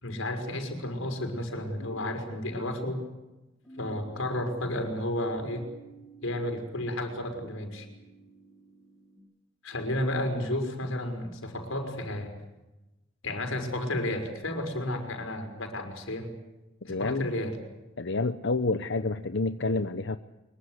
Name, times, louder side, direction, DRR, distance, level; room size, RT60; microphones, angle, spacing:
voice 1, 0.0-3.0 3.8-5.6 6.2-7.9 9.6-12.3 13.2-16.3 16.8-17.6, left 1 dB, 90° left, 5 dB, 5.8 m, -32 dB
sound 1, 3.6-9.2, right 2 dB, 5° left, 7.8 m, -53 dB
voice 2, 16.9-17.3 18.0-20.2, left 3 dB, 60° left, 9 dB, 0.9 m, -28 dB
25.0 x 23.5 x 8.1 m, 1.0 s
head